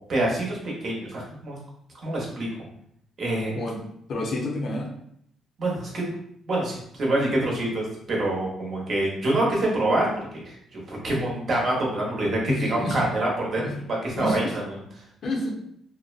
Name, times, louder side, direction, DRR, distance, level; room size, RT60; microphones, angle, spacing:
voice 1, 0.0-1.6 2.0-2.5 3.2-3.5 5.6-6.1 6.5-10.1 10.3-13.6 14.0-14.6, right 1 dB, 50° right, -3 dB, 0.9 m, -26 dB
voice 2, 4.1-4.9 12.5-13.0 13.6-13.8 14.2-14.6 15.2-15.5, left 1 dB, 65° left, -1 dB, 0.6 m, -29 dB
2.6 x 2.1 x 2.4 m, 0.70 s
cardioid pair, 90°, 0 cm